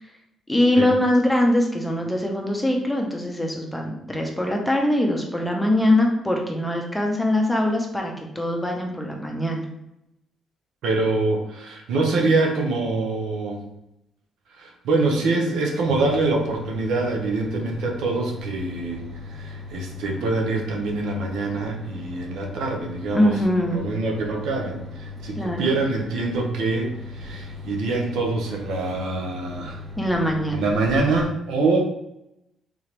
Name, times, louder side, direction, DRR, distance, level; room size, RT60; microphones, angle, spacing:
voice 1, 0.5-9.6 23.1-23.8 25.4-25.7 30.0-30.7, left 1 dB, 5° left, 1 dB, 0.8 m, -22 dB
voice 2, 10.8-13.6 14.5-19.0 19.3-23.3 23.7-29.8 30.5-31.8, right 3 dB, 80° right, 1 dB, 0.8 m, -25 dB
sound 1, 15.9-31.3, left 3 dB, 50° right, 1.0 m, -38 dB
3.8 x 2.8 x 3.3 m, 0.85 s
cardioid pair, 90°, 0 cm